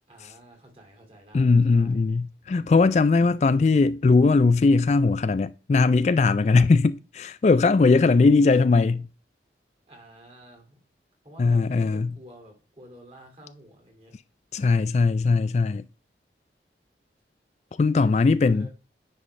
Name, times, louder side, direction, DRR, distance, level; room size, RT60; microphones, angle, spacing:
voice 1, 0.1-2.2 9.9-10.8 11.2-14.1 18.0-18.7, equal, 30° right, 2.3 m, -49 dB
voice 2, 1.3-9.1 11.4-12.1 14.5-15.8 17.8-18.7, left 4 dB, 40° left, 0.3 m, -20 dB
9.8 x 5.5 x 3.2 m
head